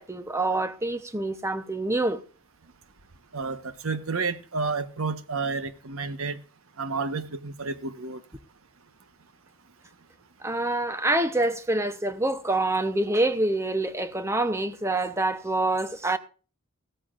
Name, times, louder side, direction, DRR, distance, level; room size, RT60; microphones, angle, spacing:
voice 1, 0.0-2.2 10.4-16.2, right 2 dB, 15° right, 0.8 m, -26 dB
voice 2, 3.3-6.4 6.8-8.2, right 4 dB, 85° right, 1.2 m, -30 dB
16.0 x 13.5 x 2.5 m
head